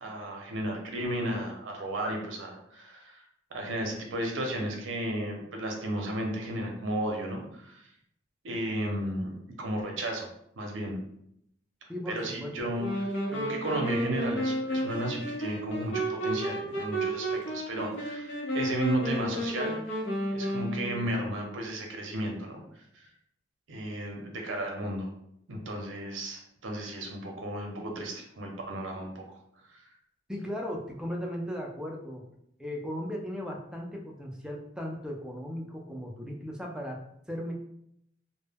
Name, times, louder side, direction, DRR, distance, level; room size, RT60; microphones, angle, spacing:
voice 1, 0.0-3.2 3.5-7.9 8.4-10.3 10.6-11.0 12.1-20.0 20.3-22.6 22.9-23.1 23.7-25.1 25.5-29.2 29.7-29.8, right 1 dB, 75° right, 1 dB, 0.6 m, -34 dB
voice 2, 11.9-12.8 30.3-32.2 32.6-37.0 37.3-37.5, equal, 5° right, 0 dB, 0.3 m, -37 dB
sound 1, 12.8-21.2, right 1 dB, 70° left, 0.6 m, -32 dB
2.1 x 2.0 x 3.4 m, 0.74 s
head